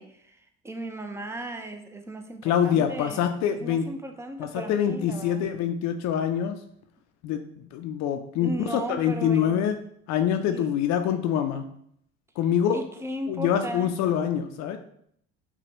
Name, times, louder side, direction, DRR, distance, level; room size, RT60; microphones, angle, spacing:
voice 1, 0.0-5.4 8.4-9.7 10.5-10.7 11.0-11.1 12.7-13.9, right 1 dB, 10° right, 6 dB, 0.5 m, -36 dB
voice 2, 2.4-3.9 4.4-6.6 7.2-7.4 7.7-9.8 10.1-11.7 12.4-12.8 13.3-14.8, left 9 dB, 60° left, 7 dB, 0.5 m, -25 dB
5.9 x 2.2 x 2.9 m, 0.68 s
supercardioid pair, 80°, 31 cm